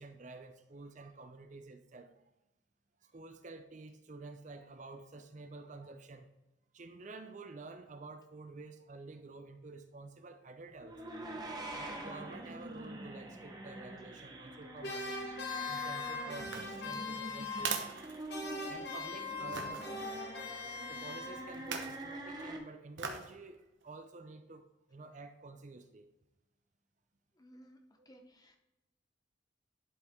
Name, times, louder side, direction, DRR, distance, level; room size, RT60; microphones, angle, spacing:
voice 1, 0.0-2.1 3.0-6.3 6.7-11.1 11.7-15.2 15.7-17.9 18.7-20.3 20.9-26.1 28.0-28.1, right 3 dB, 40° right, 8 dB, 0.5 m, -50 dB
sound 1, 10.8-22.6, right 1 dB, 20° right, 0.9 m, -45 dB
sound 2, 14.8-18.0 18.3-21.7, left 3 dB, 55° left, 1.2 m, -41 dB
sound 3, 16.4-18.8 19.5-19.9 21.5-22.0 23.0-23.3 23.8-23.9, right 6 dB, 70° right, 1.0 m, -41 dB
voice 2, 27.3-27.8 28.0-28.6, equal, 20° left, 4 dB, 0.8 m, -58 dB
11.5 x 5.1 x 3.6 m, 0.98 s
head